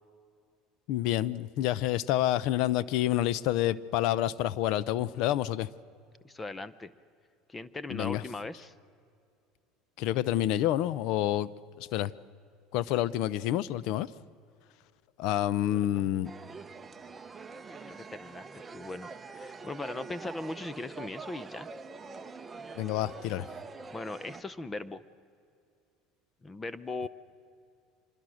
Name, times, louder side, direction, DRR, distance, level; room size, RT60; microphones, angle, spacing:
voice 1, 0.9-5.7 7.9-8.2 10.0-11.5 11.8-12.1 12.7-14.1 15.2-16.3 22.8-23.5, left 13 dB, 65° left, 19 dB, 0.6 m, -28 dB
voice 2, 6.2-6.9 7.5-8.7 15.7-16.1 17.7-21.7 23.9-25.0 26.4-27.1, left 2 dB, 15° left, 16 dB, 0.6 m, -39 dB
sound 1, 16.2-24.4, right 4 dB, 20° right, 0.9 m, -45 dB
25.5 x 21.0 x 6.4 m, 2.4 s
supercardioid pair, 125°, 0 cm